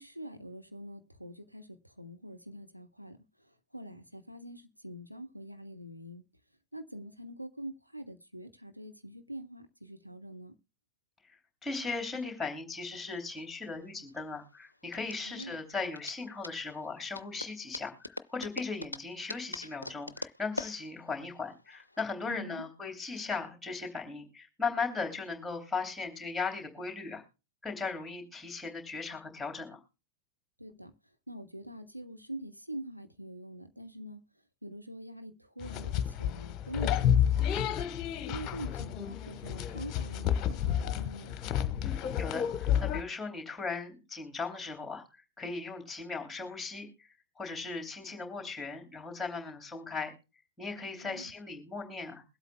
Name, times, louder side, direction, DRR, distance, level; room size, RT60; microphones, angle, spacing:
voice 1, 0.0-3.2 3.7-6.2 6.7-10.5 15.3-15.6 22.3-22.6 30.6-30.9 31.3-34.2 34.6-37.8 38.3-41.4 51.0-51.3, right 1 dB, 90° right, 0.9 m, -44 dB
voice 2, 11.3-27.2 27.6-29.8 41.8-50.1 50.6-52.2, left 4 dB, 5° left, 3.0 m, -38 dB
sound 1, 13.1-22.0, left 2 dB, 85° left, 0.5 m, -43 dB
sound 2, 35.6-43.0, left 9 dB, 35° left, 1.1 m, -30 dB
22.5 x 8.1 x 2.2 m
figure-of-eight pair, 90°, 0 cm